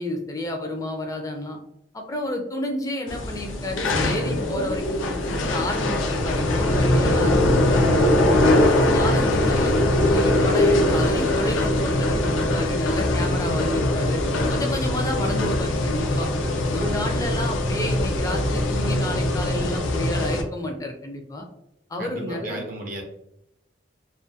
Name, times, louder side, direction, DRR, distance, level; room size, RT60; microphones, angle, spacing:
voice 1, 0.0-1.6 1.9-7.9 8.4-9.8 10.1-14.2 14.5-16.3 16.7-21.5 21.9-22.6, left 1 dB, 20° left, 3 dB, 0.4 m, -31 dB
sound 1, 3.1-20.4, left 1 dB, 90° left, 0.4 m, -22 dB
voice 2, 22.0-23.0, right 1 dB, 45° right, 1 dB, 0.4 m, -34 dB
2.3 x 2.1 x 2.6 m, 0.82 s
head